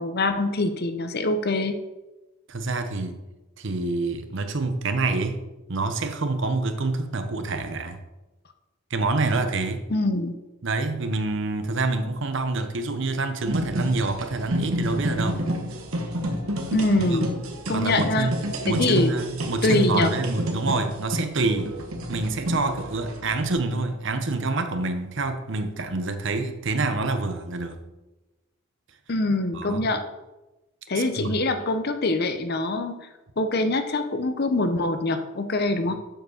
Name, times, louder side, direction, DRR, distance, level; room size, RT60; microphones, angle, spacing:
voice 1, 0.0-1.8 9.9-10.4 16.7-17.3 17.7-18.3 18.7-19.1 19.6-20.1 29.1-30.0 30.9-33.0 33.4-36.0, left 2 dB, 45° left, 8 dB, 0.7 m, -24 dB
voice 2, 2.5-3.2 3.6-5.4 5.7-8.0 8.9-9.9 10.6-15.4 17.0-17.2 17.7-18.4 18.7-21.8 22.1-27.8 29.5-29.9 31.0-31.4, right 3 dB, 55° right, 8 dB, 0.8 m, -27 dB
sound 1, 13.5-23.5, equal, 70° right, 1.2 m, -30 dB
7.7 x 4.9 x 6.5 m, 1.1 s
head